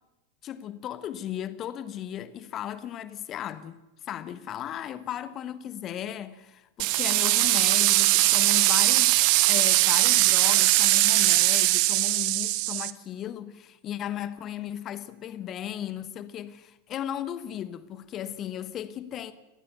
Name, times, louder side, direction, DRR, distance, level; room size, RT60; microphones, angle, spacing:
voice 1, 0.4-19.3, left 10 dB, 30° left, 1.3 m, -36 dB
sound 1, 6.8-12.9, right 20 dB, 45° right, 0.9 m, -21 dB
29.0 x 14.5 x 7.0 m
figure-of-eight pair, 90°, 0 cm